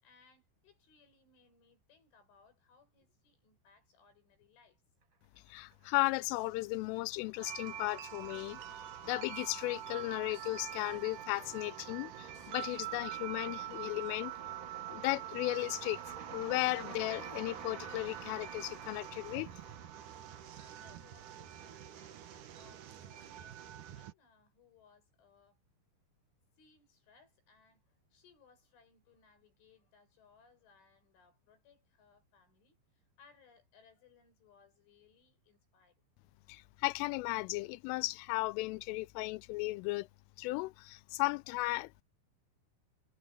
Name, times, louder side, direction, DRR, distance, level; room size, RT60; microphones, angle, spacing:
voice 1, 0.0-4.8 20.6-25.6 26.6-36.0 36.6-36.7 41.1-41.2, left 5 dB, 70° left, 9.3 m, -66 dB
voice 2, 5.5-8.6 9.0-14.3 14.9-16.0 16.3-19.5 36.5-40.1 40.4-42.0, left 21 dB, 85° left, 3.2 m, -35 dB
sound 1, 5.5-6.2 6.5-21.7, right 6 dB, 40° right, 1.8 m, -51 dB
sound 2, 6.3-13.0, left 7 dB, 50° left, 4.1 m, -67 dB
sound 3, 7.4-24.1, right 12 dB, 75° right, 1.8 m, -46 dB
omnidirectional pair, 5.6 m